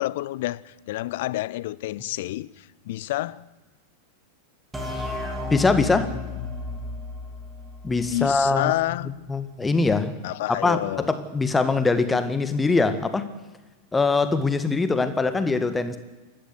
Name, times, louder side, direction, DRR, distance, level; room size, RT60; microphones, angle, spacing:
voice 1, 0.0-3.4 8.1-9.1 10.2-11.1, left 16 dB, 50° left, 0.6 m, -29 dB
sound 1, 4.7-8.3, left 3 dB, 5° right, 3.9 m, -33 dB
voice 2, 5.5-6.1 7.8-8.7 9.0-10.1 10.6-13.3 13.9-16.0, left 3 dB, 10° left, 1.8 m, -22 dB
28.0 x 12.0 x 8.2 m
figure-of-eight pair, 90°, 0 cm